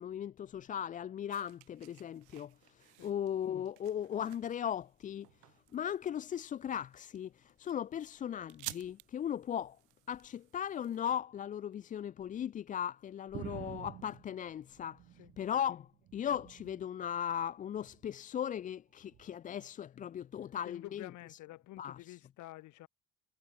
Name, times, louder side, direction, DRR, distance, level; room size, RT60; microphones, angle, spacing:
voice 1, 0.0-9.8 10.1-15.0 15.4-21.4 21.8-22.2, left 9 dB, 25° left, 0.4 m, -38 dB
sound 1, 1.3-11.1, right 27 dB, 60° right, 7.4 m, -54 dB
sound 2, 13.3-15.6 15.9-16.9 17.7-18.1 19.1-19.3, right 13 dB, 40° right, 1.2 m, -49 dB
voice 2, 20.6-22.9, left 17 dB, 55° left, 5.4 m, -49 dB
figure-of-eight pair, 50°, 35 cm